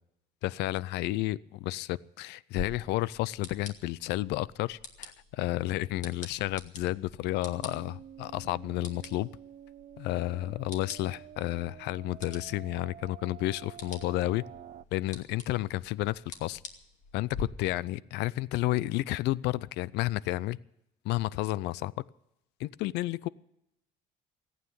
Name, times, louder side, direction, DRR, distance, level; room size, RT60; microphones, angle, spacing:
voice 1, 0.4-9.3 10.0-14.4 14.9-16.6 17.1-20.6 21.0-21.9 22.6-23.3, left 17 dB, 85° left, 0.5 m, -31 dB
sound 1, 2.5-17.4, left 4 dB, 45° left, 2.3 m, -47 dB
sound 2, 7.4-14.8, right 10 dB, 50° right, 0.6 m, -49 dB
15.0 x 9.2 x 9.5 m
cardioid pair, 110°, 17 cm